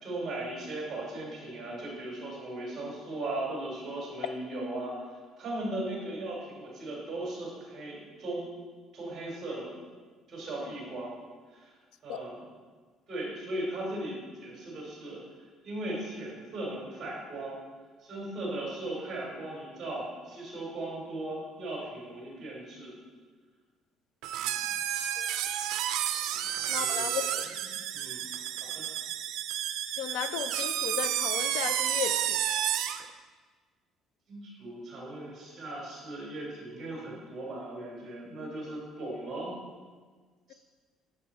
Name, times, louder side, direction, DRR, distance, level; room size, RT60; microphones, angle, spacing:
voice 1, 0.0-5.0 5.4-8.5 8.9-9.7 10.3-11.1 11.5-11.7 12.0-12.4 13.1-15.2 15.6-17.6 18.0-22.9 24.4-24.6 26.3-28.3 28.6-28.9 34.3-39.6 40.5-40.6, right 1 dB, 30° right, -3 dB, 2.9 m, -38 dB
sound 1, 24.2-33.1, right 11 dB, 75° right, 0.4 m, -31 dB
voice 2, 26.7-27.4 30.0-32.5, left 9 dB, 85° left, 11 dB, 0.4 m, -35 dB
10.0 x 6.2 x 4.1 m, 1.5 s
cardioid pair, 175°, 0 cm